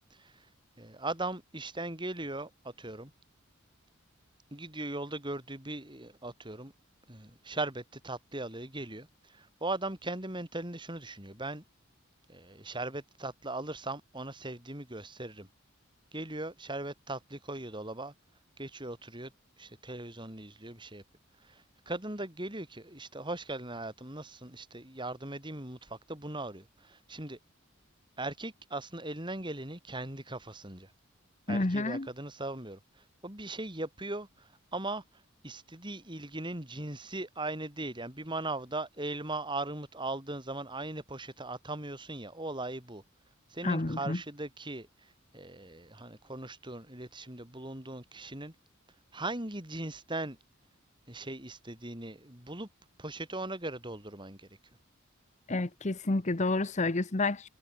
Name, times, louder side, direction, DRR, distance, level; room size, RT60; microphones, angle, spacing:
voice 1, 0.1-0.5 0.8-3.1 4.5-6.7 7.1-11.6 12.3-15.5 16.1-18.1 18.6-19.3 19.6-21.0 21.4-27.4 28.2-30.9 31.5-43.0 43.5-48.5 49.1-50.4 51.1-52.7 53.0-54.6, right 2 dB, 25° right, 5.1 m, -39 dB
voice 2, 31.5-32.1 43.6-44.2 55.5-57.5, left 2 dB, 35° left, 1.0 m, -29 dB
head